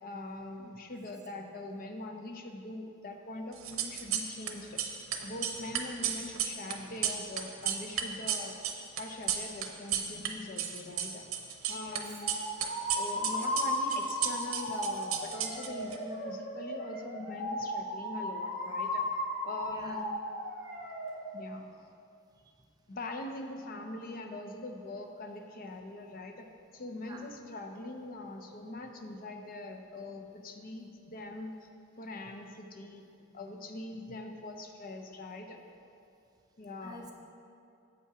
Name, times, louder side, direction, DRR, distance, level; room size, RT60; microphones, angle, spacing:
voice 1, 0.0-4.8 5.2-8.5 9.0-11.2 11.7-12.4 12.9-19.0 19.4-20.1 21.3-21.6 22.9-26.5 26.7-31.5 32.0-33.1 33.3-35.6 36.6-37.0, left 2 dB, 40° left, 4 dB, 0.5 m, -42 dB
sound 1, 3.6-4.5 4.8-10.3 10.6-12.0 12.3-16.0, right 9 dB, 75° right, 0.7 m, -33 dB
sound 2, 12.2-21.1, left 1 dB, 75° left, 1.9 m, -35 dB
voice 2, 19.7-20.0 21.2-21.3 27.1-27.3 36.8-37.1, right 1 dB, 20° right, 2 dB, 0.5 m, -50 dB
7.6 x 5.5 x 4.9 m, 2.6 s
head